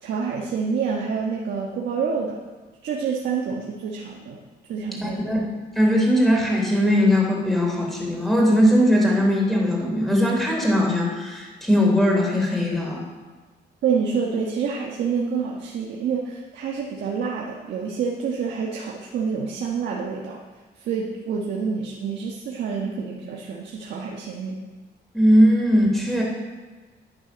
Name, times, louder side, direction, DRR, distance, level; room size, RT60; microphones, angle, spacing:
voice 1, 0.0-2.4 2.8-4.4 4.7-5.3 13.8-20.4 20.8-24.6, right 6 dB, 80° right, -2 dB, 1.3 m, -27 dB
voice 2, 5.0-5.4 5.7-13.0 25.1-26.2, equal, ahead, -2 dB, 3.1 m, -19 dB
9.9 x 9.8 x 6.1 m, 1.4 s
cardioid pair, 135°, 18 cm